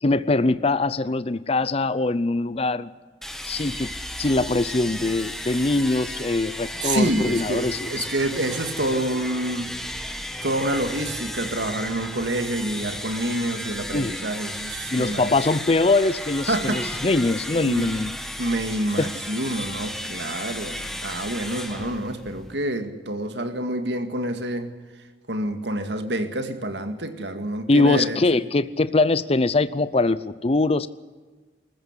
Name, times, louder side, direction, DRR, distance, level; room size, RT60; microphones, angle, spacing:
voice 1, 0.0-2.9 3.5-3.9 4.2-8.1 13.9-14.1 14.9-18.1 19.0-19.1 27.7-30.9, left 2 dB, 30° left, 15 dB, 0.6 m, -22 dB
sound 1, 3.2-22.7, equal, ahead, 1.5 m, -34 dB
voice 2, 6.8-9.7 10.4-15.3 16.5-16.8 17.6-17.9 18.4-24.7 25.3-28.2, right 1 dB, 70° right, 7 dB, 2.1 m, -27 dB
21.0 x 14.5 x 9.8 m, 1.4 s
head